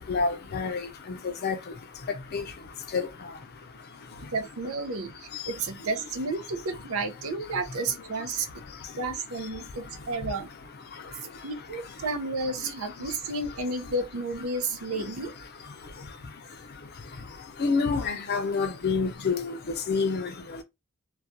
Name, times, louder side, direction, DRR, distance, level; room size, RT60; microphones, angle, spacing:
voice 1, 0.1-0.8 1.1-1.2 1.4-1.6 2.3-2.4 2.9-3.1 17.6-19.6 19.9-20.3, left 4 dB, 50° left, 0.5 m, -27 dB
voice 2, 4.3-8.5 9.0-10.5 11.4-15.3, right 3 dB, 85° right, 0.6 m, -32 dB
2.4 x 2.3 x 2.6 m
head